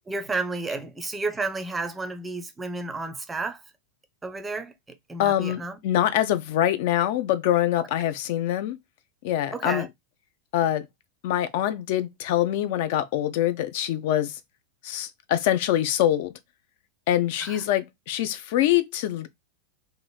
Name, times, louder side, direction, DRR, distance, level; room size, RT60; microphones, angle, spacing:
voice 1, 0.1-3.6 4.2-4.7 5.1-5.8 7.8-7.9 9.5-9.9 17.4-17.6, right 3 dB, 10° right, 0.5 m, -31 dB
voice 2, 5.2-8.8 9.2-9.9 10.5-10.8 11.2-14.4 14.8-16.4 17.1-19.3, left 12 dB, 50° left, 0.3 m, -24 dB
3.0 x 2.5 x 2.2 m
figure-of-eight pair, 90°, 0 cm